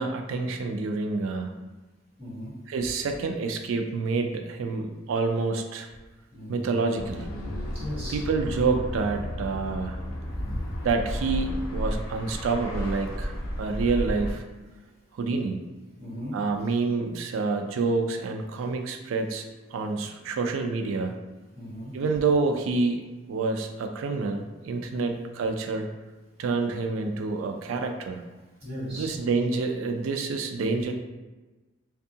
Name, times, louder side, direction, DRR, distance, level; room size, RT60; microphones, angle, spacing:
voice 1, 0.0-1.5 2.7-5.9 6.5-7.3 8.1-10.0 10.8-14.4 15.1-15.6 16.3-19.4 19.7-21.1 21.9-25.9 26.4-28.2 28.9-30.9, right 4 dB, 85° right, 5 dB, 0.3 m, -28 dB
voice 2, 2.2-2.5 6.3-6.7 7.7-8.2 10.3-10.7 16.0-16.3 21.5-21.9 24.9-25.2 28.6-29.1, equal, 30° right, -11 dB, 1.3 m, -36 dB
sound 1, 7.0-14.3, equal, 75° left, 0.5 m, -33 dB
2.6 x 2.3 x 2.7 m, 1.2 s
head